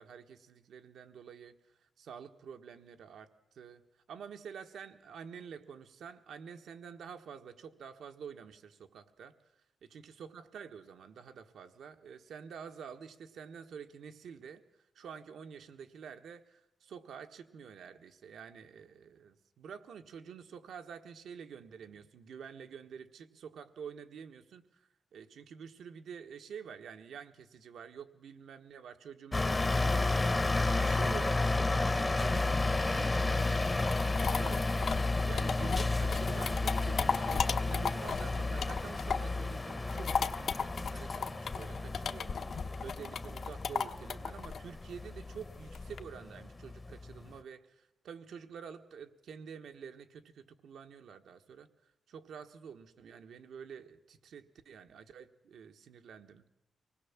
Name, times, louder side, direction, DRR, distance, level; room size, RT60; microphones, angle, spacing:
voice 1, 0.0-1.5 1.8-3.3 3.5-3.8 4.1-9.3 9.8-14.6 14.9-51.7 52.1-56.4, right 7 dB, 90° right, 7 dB, 1.4 m, -48 dB
sound 1, 29.3-47.4, left 2 dB, 20° left, 0.8 m, -32 dB
sound 2, 33.6-39.4 39.7-46.0, left 6 dB, 65° left, 1.1 m, -35 dB
25.0 x 19.5 x 7.4 m, 0.87 s
wide cardioid pair, 125°, 0 cm